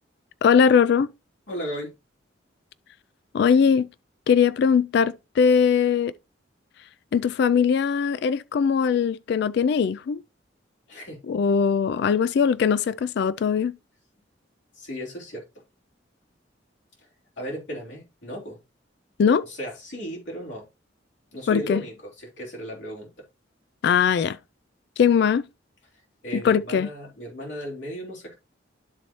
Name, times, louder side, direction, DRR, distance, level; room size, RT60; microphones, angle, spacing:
voice 1, 0.4-1.1 3.3-3.9 4.3-6.1 7.1-10.2 11.3-13.8 19.2-19.5 21.5-21.8 23.8-24.4 25.0-25.4 26.3-26.9, left 6 dB, 65° left, 0.3 m, -20 dB
voice 2, 1.5-1.9 10.9-11.2 14.7-15.6 17.4-18.6 19.5-20.7 21.3-23.3 25.9-28.3, equal, 80° left, 3.5 m, -36 dB
12.0 x 4.1 x 3.0 m
head